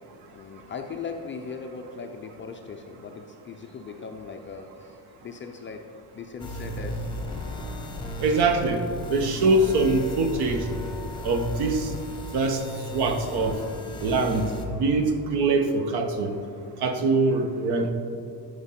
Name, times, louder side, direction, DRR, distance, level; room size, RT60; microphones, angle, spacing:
voice 1, 0.3-5.0 5.2-5.8 6.1-7.1, left 5 dB, 30° left, 3 dB, 0.4 m, -38 dB
sound 1, 6.4-14.7, left 1 dB, 10° left, 1.0 m, -35 dB
voice 2, 8.2-8.8 9.1-10.6 11.2-11.9 12.3-12.6 12.9-13.6 14.0-16.3 16.8-17.9, right 3 dB, 60° right, 5 dB, 1.1 m, -23 dB
11.5 x 5.2 x 5.7 m, 2.5 s
cardioid pair, 170°, 44 cm